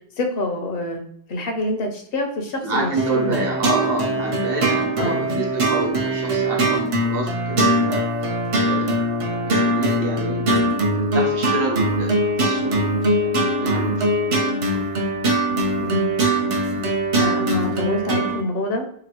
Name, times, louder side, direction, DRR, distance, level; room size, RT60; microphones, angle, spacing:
voice 1, 0.2-1.0 1.3-3.4 5.0-5.3 12.2-12.3 15.8-16.1 17.1-18.9, left 1 dB, 70° left, 4 dB, 0.8 m, -26 dB
voice 2, 2.6-8.0 8.6-8.9 9.4-10.4 10.9-12.7 13.2-14.4 14.7-15.1, right 2 dB, 65° right, -1 dB, 1.0 m, -29 dB
sound 1, 3.0-18.4, right 1 dB, 50° right, 0.4 m, -21 dB
2.9 x 2.4 x 2.8 m, 0.68 s
omnidirectional pair, 1.1 m